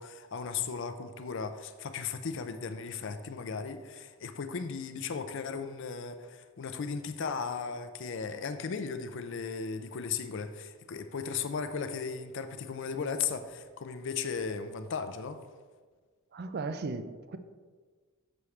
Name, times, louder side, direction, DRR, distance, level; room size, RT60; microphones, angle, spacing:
voice 1, 0.0-15.5, left 5 dB, 55° left, 0.5 m, -36 dB
sound 1, 11.0-15.6, left 1 dB, 15° left, 0.8 m, -62 dB
voice 2, 16.3-17.4, right 3 dB, 50° right, 0.4 m, -36 dB
7.0 x 6.2 x 3.2 m
head